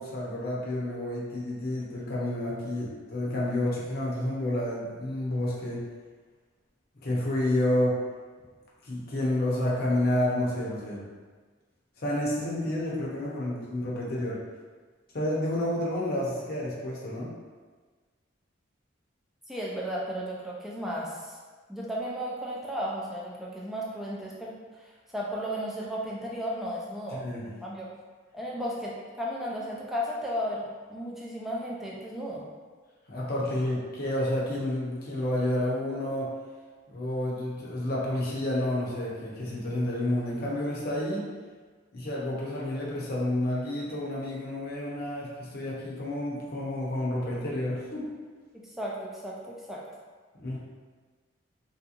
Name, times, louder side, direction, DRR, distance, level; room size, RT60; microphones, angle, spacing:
voice 1, 0.0-5.8 7.0-8.0 8.8-11.0 12.0-14.4 15.1-17.3 27.1-27.4 33.1-36.3 36.9-41.3 41.9-48.1 50.3-50.6, left 1 dB, 50° left, -5 dB, 0.7 m, -30 dB
voice 2, 19.5-21.4 21.7-27.9 28.3-32.4 48.8-49.8, equal, ahead, -5 dB, 0.4 m, -34 dB
3.5 x 2.8 x 2.4 m, 1.5 s
head